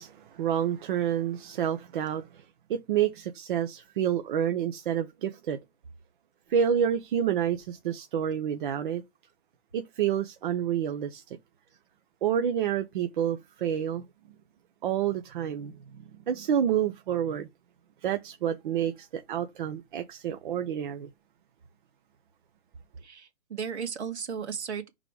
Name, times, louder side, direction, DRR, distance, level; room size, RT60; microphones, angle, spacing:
voice 1, 0.0-2.4 2.7-5.6 6.5-9.0 9.7-11.4 12.2-14.0 14.8-17.5 18.0-21.1, right 9 dB, 45° right, 0.9 m, -29 dB
voice 2, 23.0-24.9, right 7 dB, 70° right, 2.2 m, -35 dB
5.3 x 3.9 x 4.6 m
hypercardioid pair, 140°, 34 cm